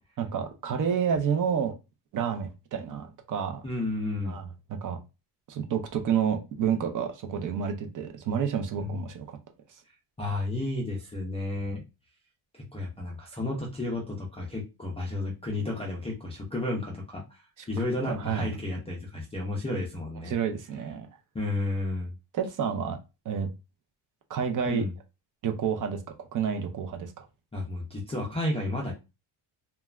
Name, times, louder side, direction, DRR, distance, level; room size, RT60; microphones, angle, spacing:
voice 1, 0.2-1.7 2.1-3.6 4.3-5.0 5.5-9.4 18.1-18.5 20.3-21.1 22.3-23.0 23.3-23.5 24.3-24.9 25.4-27.3, right 7 dB, 40° right, 5 dB, 0.5 m, -29 dB
voice 2, 3.6-4.4 8.8-9.1 10.2-11.8 12.5-20.3 21.3-22.1 24.7-24.9 27.5-28.9, left 2 dB, 15° left, -4 dB, 0.3 m, -32 dB
3.1 x 2.2 x 2.3 m, 0.27 s
cardioid pair, 155°, 50 cm